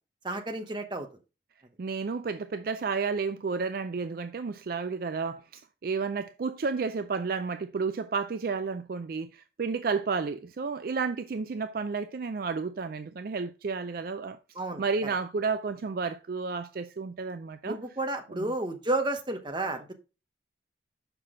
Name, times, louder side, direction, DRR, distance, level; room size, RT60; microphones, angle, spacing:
voice 1, 0.2-1.1 14.6-14.8 17.6-19.9, right 2 dB, 25° right, 0.9 m, -31 dB
voice 2, 1.8-14.4 14.8-17.8 18.3-18.5, right 4 dB, 50° right, 0.4 m, -31 dB
6.8 x 5.8 x 3.7 m
head